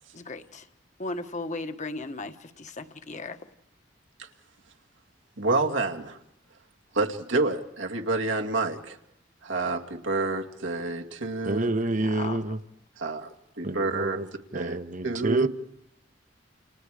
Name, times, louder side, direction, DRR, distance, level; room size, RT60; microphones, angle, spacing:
voice 1, 0.1-0.7 1.0-3.5 12.0-12.4, left 2 dB, 40° left, 1.5 m, -36 dB
voice 2, 5.4-6.2 6.9-9.0 9.4-11.7 13.0-14.2 14.5-14.8 15.0-15.5, right 3 dB, 80° right, 2.2 m, -28 dB
voice 3, 11.4-12.6 13.6-15.5, right 2 dB, 45° right, 1.0 m, -29 dB
30.0 x 29.0 x 5.0 m
head